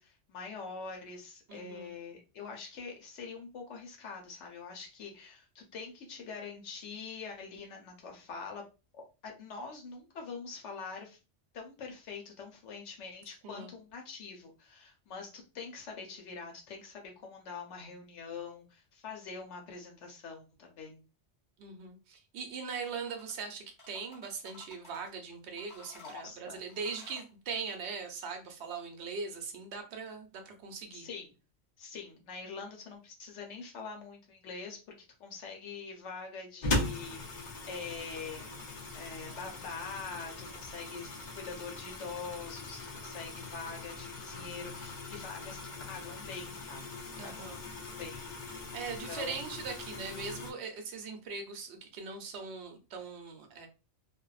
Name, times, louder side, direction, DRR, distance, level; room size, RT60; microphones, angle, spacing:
voice 1, 0.0-8.6 8.9-11.2 11.5-21.0 26.0-26.6 30.9-31.3 31.8-34.8 35.2-38.6 38.9-45.6 45.9-48.6 49.1-49.4, left 5 dB, 85° left, 2 dB, 1.0 m, -44 dB
voice 2, 1.5-1.9 13.4-13.7 21.6-31.1 47.2-47.6 48.7-53.7, right 5 dB, 70° right, 5 dB, 0.9 m, -40 dB
sound 1, 22.6-23.5 23.8-25.1 25.6-27.3, left 2 dB, 25° left, 1.2 m, -54 dB
sound 2, 36.6-50.5, left 2 dB, 50° left, 0.6 m, -40 dB
2.5 x 2.1 x 2.3 m, 0.31 s
omnidirectional pair, 1.2 m